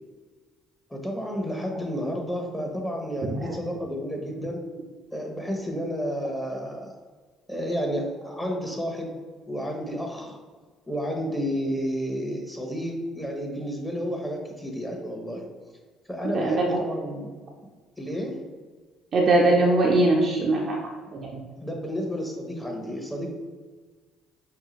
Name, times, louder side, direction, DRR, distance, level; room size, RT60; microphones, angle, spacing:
voice 1, 0.9-4.6 5.1-6.9 7.5-9.1 9.5-10.4 10.9-15.5 16.1-17.3 18.0-18.4 21.6-23.3, equal, 10° left, 1 dB, 1.0 m, -31 dB
voice 2, 3.2-3.5 16.3-16.8 19.1-20.8 21.1-21.4, right 2 dB, 50° right, -2 dB, 0.6 m, -21 dB
5.5 x 2.2 x 3.0 m, 1.4 s
hypercardioid pair, 55°, 0 cm